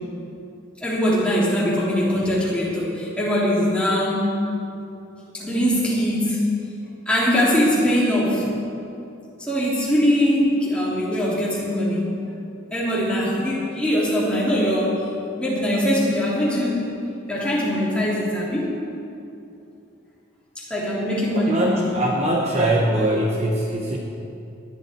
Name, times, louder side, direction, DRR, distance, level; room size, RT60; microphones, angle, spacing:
voice 1, 0.8-4.3 5.3-6.4 7.1-8.5 9.4-12.0 12.7-15.0 15.3-17.0 17.3-18.7 20.6-21.9, equal, 5° left, -7 dB, 3.2 m, -22 dB
voice 2, 21.4-24.0, right 1 dB, 35° right, -2 dB, 1.2 m, -22 dB
19.5 x 11.5 x 4.5 m, 2.7 s
head